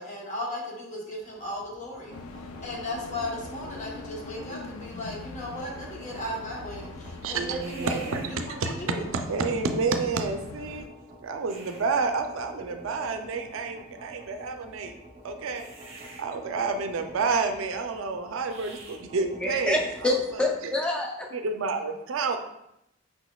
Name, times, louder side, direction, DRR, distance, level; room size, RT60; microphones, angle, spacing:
voice 1, 0.0-9.1, left 1 dB, 35° left, -2 dB, 0.9 m, -36 dB
sound 1, 1.2-20.4, right 1 dB, 30° right, 0.8 m, -47 dB
sound 2, 2.1-10.9, left 3 dB, 85° left, 0.4 m, -43 dB
voice 2, 7.2-8.7 9.1-10.9 11.2-14.9 15.2-15.6 16.2-19.8 21.3-22.4, right 4 dB, 70° right, 6 dB, 0.4 m, -29 dB
voice 3, 19.2-21.3, left 1 dB, 5° left, -1 dB, 0.5 m, -27 dB
5.3 x 4.1 x 2.3 m, 0.82 s
head